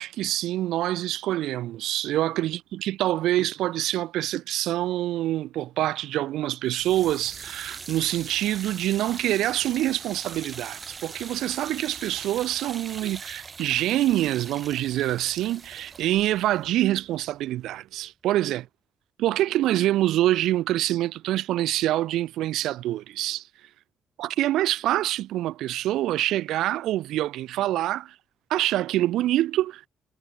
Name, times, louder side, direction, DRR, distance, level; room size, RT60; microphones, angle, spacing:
voice 1, 0.0-18.6 19.2-23.4 24.2-28.1 28.5-29.9, right 14 dB, 85° right, 1.5 m, -26 dB
sound 1, 6.7-17.8, right 5 dB, 40° right, 2.2 m, -42 dB
cardioid pair, 90°, 0 cm